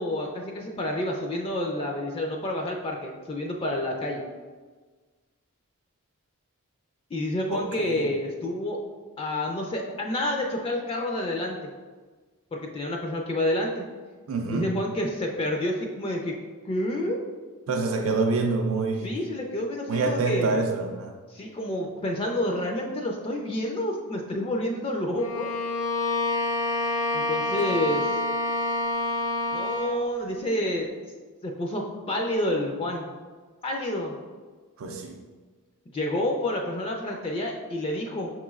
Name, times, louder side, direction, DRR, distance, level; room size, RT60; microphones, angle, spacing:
voice 1, 0.0-4.2 7.1-8.8 9.2-11.6 12.5-13.9 14.5-16.4 16.6-17.2 19.0-20.6 21.3-25.5 27.1-28.2 29.5-30.9 31.4-33.1 33.6-34.1 35.9-38.3, left 1 dB, 25° left, 1 dB, 0.3 m, -29 dB
voice 2, 7.5-8.1 14.3-14.8 17.7-19.2 19.9-21.1 27.5-27.7 34.8-35.2, right 3 dB, 65° right, 3 dB, 0.4 m, -27 dB
Bowed string instrument, 25.2-30.0, left 2 dB, 70° left, 0.6 m, -27 dB
6.0 x 3.0 x 2.3 m, 1.4 s
head